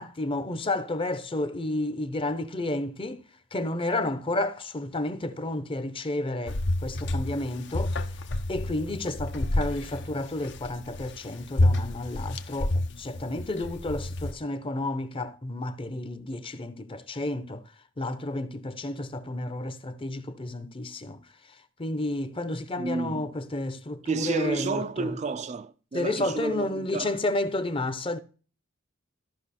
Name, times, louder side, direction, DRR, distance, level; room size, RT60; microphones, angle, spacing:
voice 1, 0.0-3.2 3.5-8.0 8.5-17.6 18.0-21.2 21.8-25.1 25.9-28.2, left 2 dB, 25° left, 0.7 m, -31 dB
sound 1, 6.5-14.3, left 1 dB, 60° left, 0.8 m, -29 dB
voice 2, 22.8-23.3 24.1-27.2, right 4 dB, 35° right, 0.4 m, -31 dB
13.5 x 5.6 x 4.2 m
head